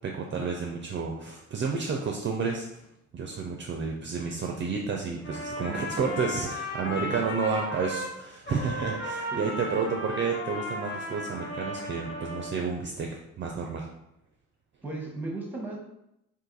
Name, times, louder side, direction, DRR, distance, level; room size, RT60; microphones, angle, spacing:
voice 1, 0.0-2.7 3.1-13.9, right 5 dB, 40° right, 1 dB, 0.4 m, -31 dB
Trumpet, 5.2-8.1 8.4-12.6, left 1 dB, 40° left, 1.1 m, -35 dB
voice 2, 5.6-6.2 6.8-7.1 9.3-9.8 14.8-15.8, right 2 dB, 5° right, -1 dB, 0.9 m, -37 dB
2.6 x 2.5 x 3.9 m, 0.82 s
cardioid pair, 90°, 30 cm